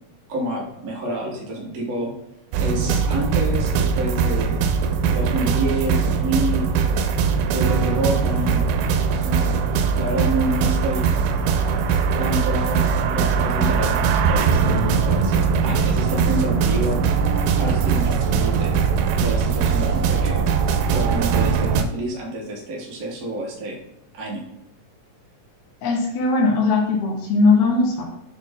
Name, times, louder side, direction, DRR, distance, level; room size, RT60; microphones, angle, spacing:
voice 1, 0.3-2.1 2.6-4.7 5.1-6.7 7.5-8.7 9.2-9.5 9.9-11.1 12.2-17.0 17.6-18.8 19.1-20.4 20.9-23.8 24.1-24.4, right 1 dB, 65° right, -3 dB, 0.8 m, -28 dB
sound 1, 2.5-21.8, right 6 dB, 85° right, 2.1 m, -20 dB
voice 2, 25.8-28.1, left 3 dB, 70° left, -2 dB, 2.1 m, -19 dB
6.3 x 4.3 x 3.6 m, 0.85 s
omnidirectional pair, 3.7 m